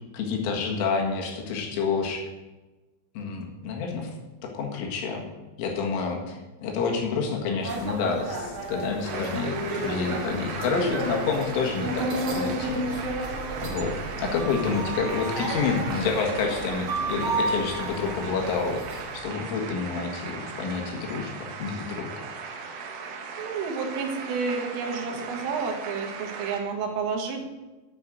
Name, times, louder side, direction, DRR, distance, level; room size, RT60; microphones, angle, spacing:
voice 1, 0.1-2.2 3.2-4.1 4.4-5.2 5.6-13.1 13.6-22.3, left 5 dB, 80° left, 1 dB, 4.3 m, -29 dB
sound 1, 7.6-19.2, right 1 dB, 50° right, 1.6 m, -32 dB
sound 2, 9.0-26.6, right 5 dB, 65° right, 2.5 m, -37 dB
voice 2, 23.4-27.4, right 5 dB, 85° right, 2 dB, 4.2 m, -30 dB
10.0 x 9.9 x 6.3 m, 1.1 s
omnidirectional pair, 5.7 m